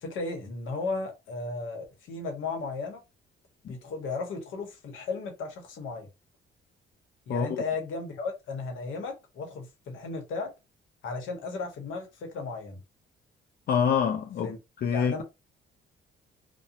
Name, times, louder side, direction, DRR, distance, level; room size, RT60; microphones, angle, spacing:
voice 1, 0.0-3.0 3.7-6.1 7.3-10.5 11.0-12.8 14.4-14.6 14.9-15.2, left 3 dB, 80° left, 0.9 m, -35 dB
voice 2, 7.3-7.6 13.7-15.2, left 7 dB, 55° left, 0.4 m, -27 dB
2.4 x 2.2 x 2.8 m
cardioid pair, 90°, 20 cm